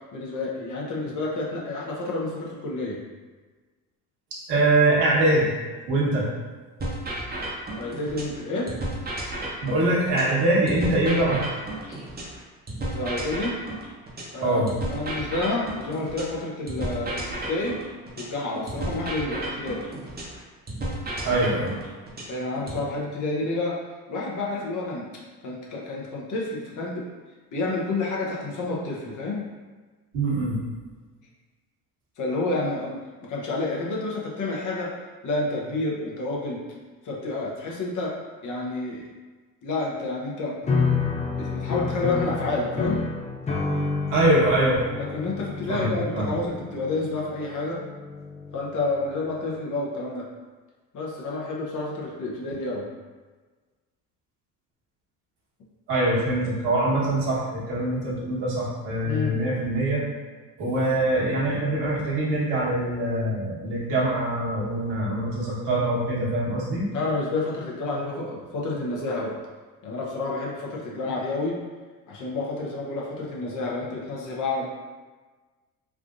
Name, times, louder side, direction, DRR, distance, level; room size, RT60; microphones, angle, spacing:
voice 1, 0.1-3.0 7.7-8.7 11.9-12.0 12.9-13.6 14.3-14.6 14.9-17.8 18.2-19.9 22.3-23.8 24.1-25.1 25.4-27.1 27.5-29.5 32.2-34.9 35.2-36.6 37.0-38.1 38.4-39.1 39.6-40.6 41.4-43.1 45.0-47.8 48.5-50.3 50.9-52.8 59.0-59.3 66.9-69.4 69.8-71.6 72.1-74.7, left 2 dB, 45° left, -3 dB, 0.9 m, -29 dB
voice 2, 4.5-5.5 5.9-6.3 9.6-11.4 14.4-14.7 21.2-21.7 30.1-30.6 44.1-44.8 45.7-46.3 55.9-60.0 60.6-66.9, right 1 dB, 65° right, -6 dB, 1.3 m, -23 dB
sound 1, 6.8-8.4 8.7-12.4 12.7-16.4 16.7-20.4 20.7-22.8, right 1 dB, 20° right, 0.8 m, -33 dB
sound 2, 40.6-49.0, left 4 dB, 15° left, 0.4 m, -29 dB
3.5 x 2.5 x 2.5 m, 1.4 s
hypercardioid pair, 75°, 44 cm